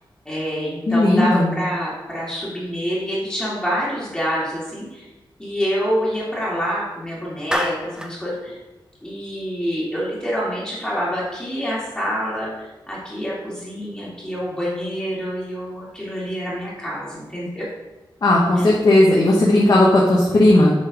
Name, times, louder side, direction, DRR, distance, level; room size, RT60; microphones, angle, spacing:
voice 1, 0.3-5.1 5.4-8.6 9.0-17.6 18.6-18.9, equal, 10° left, -7 dB, 2.1 m, -27 dB
voice 2, 0.9-1.5 18.2-20.7, left 1 dB, 45° left, -4 dB, 1.2 m, -15 dB
Clapping, 7.5-8.2, equal, 10° right, 0.6 m, -25 dB
7.3 x 4.0 x 5.2 m, 1.1 s
wide cardioid pair, 160°, 9 cm